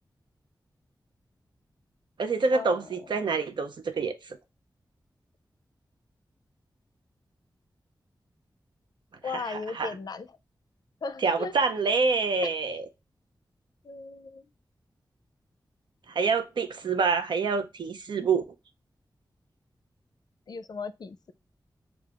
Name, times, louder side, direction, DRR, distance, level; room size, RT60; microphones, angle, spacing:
voice 1, 2.2-4.4 9.3-9.9 11.2-12.8 16.1-18.4, right 4 dB, 85° right, 0.6 m, -27 dB
voice 2, 9.2-10.3 11.0-11.5 12.4-12.5 13.8-14.4 20.5-21.3, left 4 dB, 60° left, 0.4 m, -36 dB
6.7 x 2.3 x 2.3 m
wide cardioid pair, 80°, 8 cm